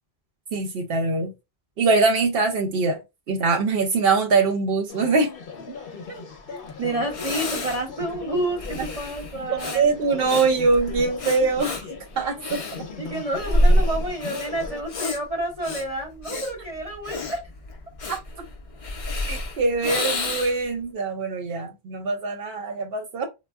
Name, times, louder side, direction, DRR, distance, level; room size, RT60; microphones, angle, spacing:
voice 1, 0.5-1.3 1.8-3.0 3.3-5.3 9.7-11.8 12.2-12.6 16.3-16.4 18.1-18.2 19.3-23.2, right 4 dB, 70° right, 0.7 m, -23 dB
sound 1, 4.9-14.8, left 5 dB, 65° left, 0.9 m, -39 dB
voice 2, 6.5-9.9 13.0-17.4, right 1 dB, 40° right, 0.8 m, -29 dB
Breathing, 6.7-6.8 7.1-20.7, left 1 dB, 50° left, 0.4 m, -28 dB
3.4 x 2.1 x 2.3 m
omnidirectional pair, 1.1 m